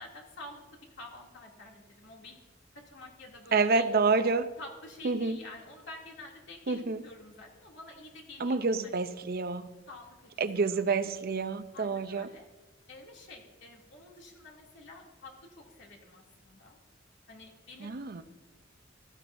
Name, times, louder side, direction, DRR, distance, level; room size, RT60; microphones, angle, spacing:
voice 1, 0.0-2.4 2.7-3.8 4.6-9.0 9.9-10.7 11.7-12.4 12.9-16.8 17.3-17.9, left 2 dB, 65° left, -2 dB, 2.7 m, -49 dB
voice 2, 3.5-4.5 5.0-5.4 6.7-7.0 8.4-9.7 10.4-12.3 17.8-18.2, right 4 dB, 50° right, 11 dB, 0.6 m, -28 dB
16.0 x 14.5 x 2.7 m, 1.2 s
head